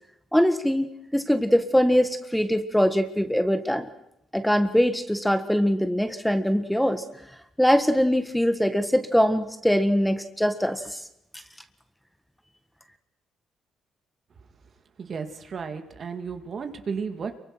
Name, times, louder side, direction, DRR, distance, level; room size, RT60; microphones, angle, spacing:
voice 1, 0.3-3.9 4.3-7.0 7.6-11.0, equal, 5° left, 9 dB, 1.6 m, -22 dB
voice 2, 15.0-17.4, right 5 dB, 50° right, 7 dB, 2.5 m, -33 dB
28.0 x 24.0 x 6.3 m, 0.82 s
cardioid pair, 90°, 0 cm